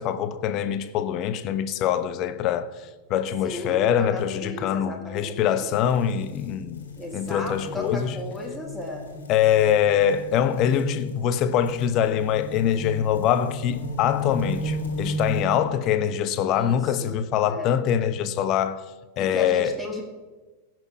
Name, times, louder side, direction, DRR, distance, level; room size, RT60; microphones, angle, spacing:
voice 1, 0.0-6.9 7.1-8.2 9.3-18.8 19.2-19.8, left 9 dB, 40° left, 0.7 m, -24 dB
voice 2, 3.4-5.7 7.0-9.1 16.4-17.1 17.4-17.7 19.2-20.0, left 1 dB, ahead, 1.8 m, -35 dB
sound 1, 5.7-15.4, left 1 dB, 65° left, 2.0 m, -35 dB
16.0 x 6.1 x 4.7 m
figure-of-eight pair, 90°, 0 cm